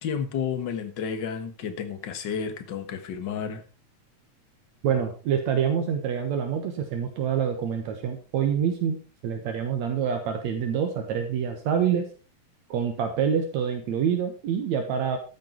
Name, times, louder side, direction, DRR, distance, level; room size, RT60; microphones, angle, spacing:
voice 1, 0.0-3.6, left 7 dB, 45° left, 8 dB, 1.7 m, -31 dB
voice 2, 4.8-9.0 9.2-12.1 12.7-15.2, right 7 dB, 75° right, 5 dB, 2.5 m, -26 dB
13.5 x 8.4 x 4.5 m, 0.36 s
omnidirectional pair, 3.3 m